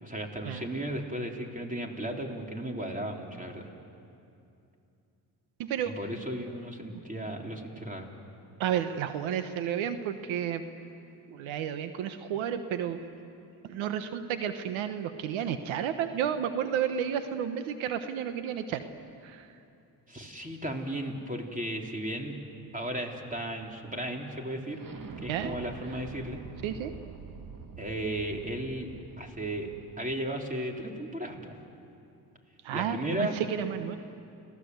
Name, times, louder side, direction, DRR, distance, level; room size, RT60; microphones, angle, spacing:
voice 1, 0.0-3.7 5.8-8.1 20.1-22.4 22.7-24.8 25.2-26.4 27.8-29.7 30.0-31.6 32.7-33.4, right 1 dB, 15° right, 1 dB, 4.0 m, -35 dB
voice 2, 5.6-5.9 8.6-10.6 11.3-13.0 13.6-18.8 19.2-19.5 25.3-25.5 26.6-26.9 32.6-34.0, right 9 dB, 85° right, 9 dB, 1.2 m, -31 dB
sound 1, 20.1-30.3, right 4 dB, 45° right, 2.1 m, -48 dB
30.0 x 18.0 x 8.1 m, 2.6 s
supercardioid pair, 60°, 46 cm